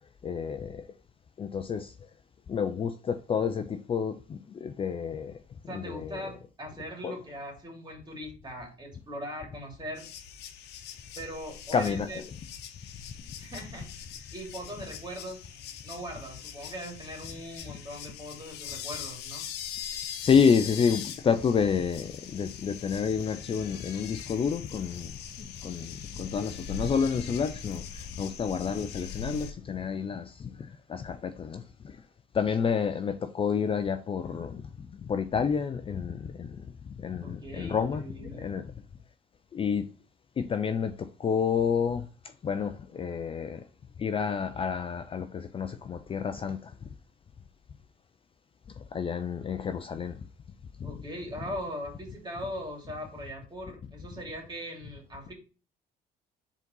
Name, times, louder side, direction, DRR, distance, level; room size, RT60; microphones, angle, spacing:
voice 1, 0.2-0.8 1.4-1.9 2.5-5.3 5.7-6.2 7.0-7.1 11.7-12.1 20.2-25.1 25.4-27.8 28.2-30.5 30.9-31.6 32.3-36.6 37.0-38.6 39.5-39.9 40.4-40.9 41.2-42.0 42.4-43.6 44.0-46.7 48.9-50.2 50.8-50.9, left 6 dB, 30° left, 0.5 m, -29 dB
voice 2, 5.7-10.1 11.1-12.2 13.4-13.9 14.3-15.4 15.8-19.5 37.2-38.6 50.8-55.3, equal, 25° right, 2.9 m, -40 dB
sound 1, 10.0-29.5, left 7 dB, 80° left, 0.9 m, -42 dB
5.0 x 4.0 x 5.4 m
cardioid pair, 110°, 17 cm